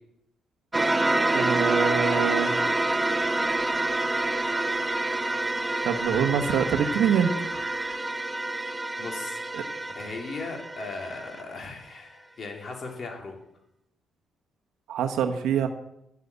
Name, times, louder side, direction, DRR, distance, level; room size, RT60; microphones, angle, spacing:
sound 1, 0.7-11.4, right 2 dB, 15° right, 1.0 m, -27 dB
sound 2, 1.1-8.0, right 4 dB, 40° right, 1.8 m, -45 dB
voice 1, 1.3-2.5 5.8-7.3 9.5-9.6 14.9-15.7, right 7 dB, 80° right, 6 dB, 1.3 m, -25 dB
voice 2, 8.3-9.4 10.0-13.4, left 3 dB, 45° left, 1 dB, 3.5 m, -38 dB
11.0 x 7.7 x 8.3 m, 0.83 s
cardioid pair, 90°, 0 cm